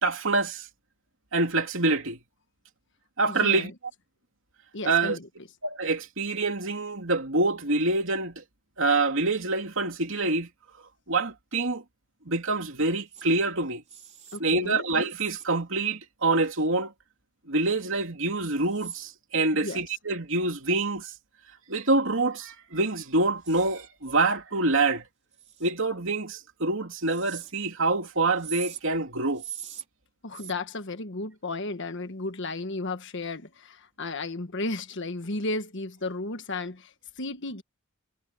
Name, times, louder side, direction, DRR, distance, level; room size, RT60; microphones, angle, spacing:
voice 1, 0.0-0.7 1.3-2.2 3.2-3.7 4.8-5.2 5.6-8.4 8.8-10.5 11.1-11.8 12.3-13.8 14.4-16.9 17.5-21.1 21.7-25.0 25.6-29.4, right 3 dB, 65° right, 3.2 m, -26 dB
voice 2, 3.3-3.7 4.7-5.3 14.3-14.8 19.6-19.8 30.2-37.6, left 2 dB, 60° left, 1.5 m, -34 dB
sound 1, 13.1-13.3 13.9-14.4 15.1-15.5 16.5-16.6 18.6-19.1 23.4-23.9 25.3-25.7 27.0-27.5 28.4-28.8 29.3-29.9 30.3-30.5, right 10 dB, 35° right, 3.8 m, -41 dB
head